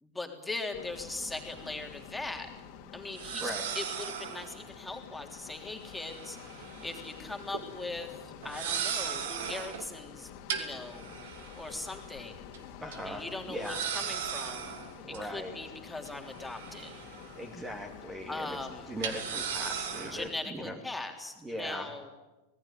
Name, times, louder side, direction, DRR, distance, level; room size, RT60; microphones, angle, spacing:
voice 1, 0.0-2.5 2.9-8.1 8.4-12.5 13.0-14.7 15.1-16.9 18.3-18.9 20.1-22.1, left 2 dB, 5° left, 3 dB, 3.5 m, -40 dB
sound 1, 0.7-20.3, left 8 dB, 45° left, 2.7 m, -48 dB
sound 2, 1.5-1.6 3.1-4.6 6.0-7.1 7.4-7.6 8.4-9.9 10.5-12.1 12.5-12.6 12.9-13.0 13.6-15.2 16.1-17.5 17.8-17.9 19.0-20.3, right 8 dB, 55° right, 2.7 m, -37 dB
voice 2, 12.8-13.8 15.0-15.6 17.4-18.6 18.9-20.8 21.4-21.9, equal, 10° right, 4 dB, 2.6 m, -39 dB
26.0 x 19.0 x 8.6 m, 1.1 s
figure-of-eight pair, 90°, 0 cm